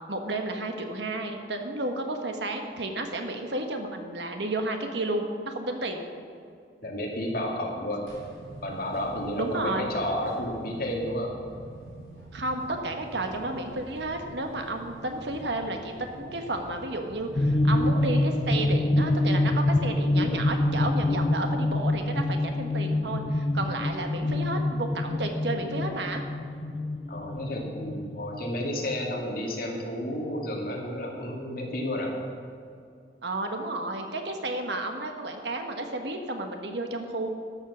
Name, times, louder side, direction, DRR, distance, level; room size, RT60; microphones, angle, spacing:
voice 1, 0.1-6.0 9.4-9.9 12.3-26.2 33.2-37.3, right 2 dB, 80° right, 4 dB, 1.3 m, -32 dB
voice 2, 6.8-8.1 8.6-11.3 27.1-32.2, left 1 dB, 55° left, -1 dB, 2.3 m, -31 dB
sound 1, 8.1-18.6, right 2 dB, 55° right, 3.3 m, -46 dB
sound 2, 17.4-28.5, left 1 dB, 35° left, 0.5 m, -26 dB
13.0 x 7.3 x 6.3 m, 2.3 s
head